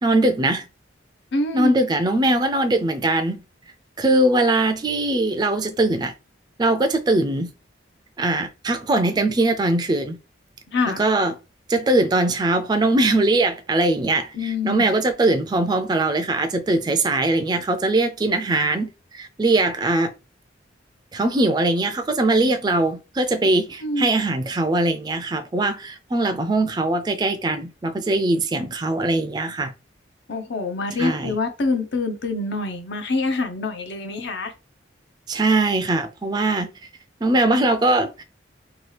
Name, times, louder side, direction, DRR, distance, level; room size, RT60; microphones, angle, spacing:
voice 1, 0.0-0.7 1.5-3.4 4.0-6.1 6.6-7.5 8.2-10.2 10.9-11.3 11.7-20.1 21.1-29.7 31.0-31.4 35.3-36.7 37.2-38.2, right 2 dB, 20° right, 0.3 m, -21 dB
voice 2, 1.3-1.8 10.7-11.0 14.3-14.8 23.8-24.1 30.3-34.5, left 3 dB, 60° left, 0.6 m, -25 dB
2.9 x 2.3 x 3.1 m
head